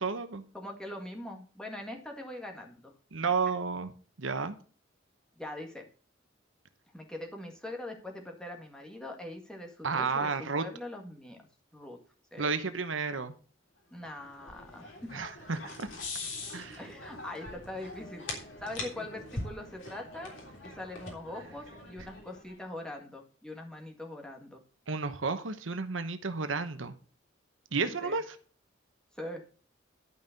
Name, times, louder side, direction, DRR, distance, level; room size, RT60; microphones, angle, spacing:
voice 1, 0.0-0.4 3.1-3.9 4.2-4.6 9.8-10.6 12.4-13.3 15.1-15.9 16.5-16.8 24.9-26.9 27.7-28.4, right 4 dB, 90° right, 10 dB, 1.0 m, -32 dB
voice 2, 0.5-2.9 3.2-3.3 5.4-5.8 6.9-11.4 11.7-12.0 12.3-12.5 13.9-15.1 15.6-15.7 16.8-20.3 20.6-24.6 28.0-28.2 29.2-29.4, left 1 dB, 5° left, 1 dB, 1.8 m, -42 dB
sound 1, 14.0-22.6, left 2 dB, 80° left, 3.5 m, -43 dB
11.5 x 5.5 x 6.6 m, 0.40 s
head